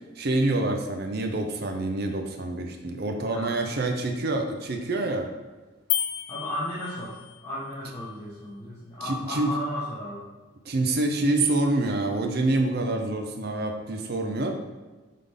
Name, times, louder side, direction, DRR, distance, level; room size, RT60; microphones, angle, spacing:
voice 1, 0.2-5.3 9.0-9.5 10.6-14.5, right 2 dB, 50° right, 4 dB, 0.6 m, -26 dB
voice 2, 3.3-3.6 6.3-7.2 7.4-10.3, left 1 dB, 15° left, -11 dB, 1.2 m, -34 dB
sound 1, 5.9-7.4, left 11 dB, 70° left, 0.4 m, -31 dB
7.5 x 3.8 x 3.6 m, 1.2 s
head